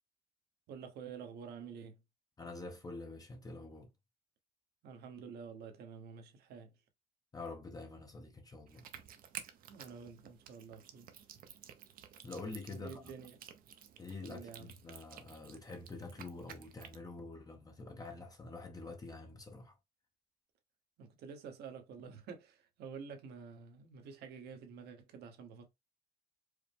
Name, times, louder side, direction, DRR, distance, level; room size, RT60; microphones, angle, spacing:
voice 1, 0.7-2.0 4.8-6.7 9.7-11.1 12.7-13.4 14.2-14.7 21.0-25.7, right 6 dB, 75° right, 1.1 m, -49 dB
voice 2, 2.4-3.9 7.3-8.8 12.2-12.9 14.0-19.8, left 3 dB, 20° left, 0.7 m, -46 dB
sound 1, 8.7-17.0, right 9 dB, 60° right, 0.7 m, -53 dB
4.9 x 2.0 x 3.4 m
cardioid pair, 110°, 17 cm